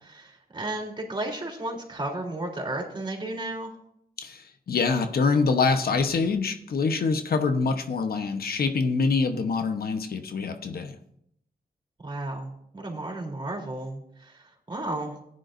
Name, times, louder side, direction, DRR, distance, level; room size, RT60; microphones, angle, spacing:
voice 1, 0.0-3.7 12.0-15.2, right 2 dB, 30° right, 0 dB, 3.4 m, -33 dB
voice 2, 4.2-11.0, left 4 dB, 75° left, 7 dB, 1.1 m, -25 dB
15.5 x 9.7 x 2.6 m, 0.72 s
wide cardioid pair, 90°, 16 cm